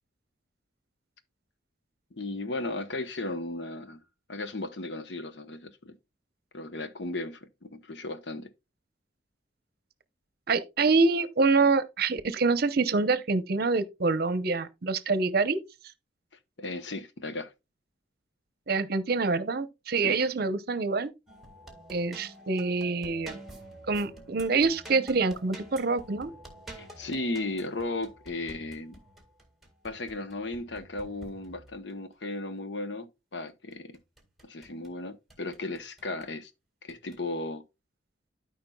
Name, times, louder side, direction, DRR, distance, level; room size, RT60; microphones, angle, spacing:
voice 1, 2.1-4.0 4.3-5.9 6.5-8.5 16.6-17.5 20.0-20.2 26.8-29.0 29.8-33.9 34.4-36.5 36.8-37.6, left 2 dB, 65° left, 0.8 m, -35 dB
voice 2, 10.5-15.6 18.7-21.1 21.9-23.3 23.9-26.3, right 4 dB, 55° right, 0.7 m, -26 dB
sound 1, 21.3-31.9 33.7-34.9 35.3-36.3 36.9-37.2, right 1 dB, ahead, 1.8 m, -49 dB
13.0 x 5.1 x 2.3 m
head